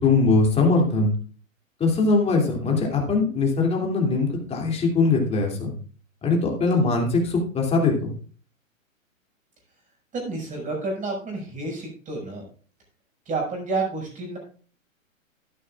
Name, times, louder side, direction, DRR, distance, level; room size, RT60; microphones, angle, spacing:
voice 1, 0.0-1.1 1.8-5.7 6.2-8.1, left 3 dB, 15° left, 0 dB, 2.7 m, -21 dB
voice 2, 10.1-12.4 13.3-14.4, right 3 dB, 20° right, 0 dB, 5.6 m, -30 dB
13.5 x 11.0 x 2.4 m, 0.42 s
figure-of-eight pair, 120°, 41 cm